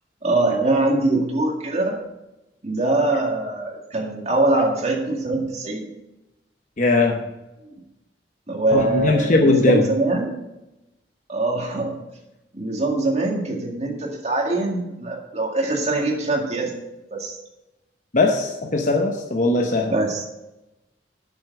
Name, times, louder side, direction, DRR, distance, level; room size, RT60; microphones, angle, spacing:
voice 1, 0.2-2.0 2.6-5.9 8.5-10.4 11.3-12.0 12.5-16.7 17.1-17.4 19.9-20.2, right 2 dB, 40° right, 1 dB, 2.0 m, -23 dB
voice 2, 6.8-7.2 8.7-9.8 18.1-19.9, left 2 dB, 45° left, 2 dB, 0.9 m, -19 dB
8.8 x 7.1 x 5.9 m, 0.96 s
head